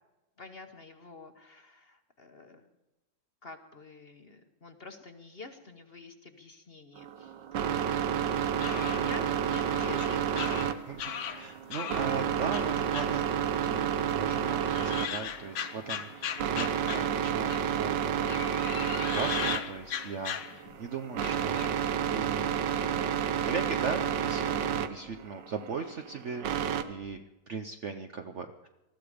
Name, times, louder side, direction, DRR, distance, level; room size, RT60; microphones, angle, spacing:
voice 1, 0.4-2.7 3.4-8.2 8.8-11.0, left 3 dB, 40° left, 7 dB, 1.1 m, -47 dB
sound 1, 7.0-26.8, right 9 dB, 75° right, 1.5 m, -30 dB
sound 2, 8.3-12.1 12.5-13.8 14.1-17.8 18.2-20.8 21.2-21.8, left 9 dB, 75° left, 1.6 m, -38 dB
voice 2, 10.9-18.4 19.0-21.7 22.0-22.5 22.8-28.7, right 5 dB, 55° right, 6 dB, 0.8 m, -38 dB
20.0 x 13.5 x 5.0 m, 1.0 s
omnidirectional pair, 2.0 m